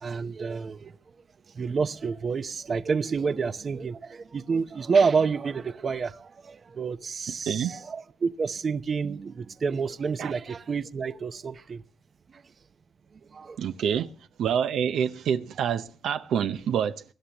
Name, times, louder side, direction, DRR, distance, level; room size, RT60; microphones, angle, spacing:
voice 1, 0.0-0.9 1.6-11.8 13.3-13.6, right 5 dB, 40° right, 0.8 m, -28 dB
voice 2, 13.6-14.1 14.4-17.0, right 8 dB, 75° right, 0.7 m, -27 dB
23.5 x 11.0 x 3.0 m
cardioid pair, 90°, 0 cm